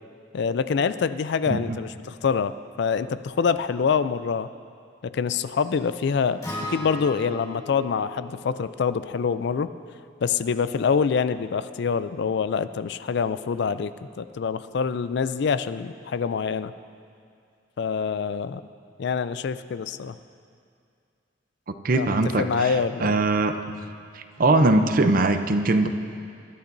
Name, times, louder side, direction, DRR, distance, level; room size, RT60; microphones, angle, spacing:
voice 1, 0.3-4.5 5.0-6.4 6.7-9.7 10.2-13.9 14.2-16.7 17.8-18.6 19.0-20.2 21.9-23.2, left 6 dB, 65° left, 13 dB, 0.4 m, -25 dB
Acoustic guitar, 6.4-10.7, left 1 dB, 20° left, 1.8 m, -39 dB
voice 2, 21.7-23.5 24.1-25.9, right 2 dB, 50° right, 8 dB, 0.6 m, -21 dB
21.5 x 12.0 x 2.6 m, 2.3 s
head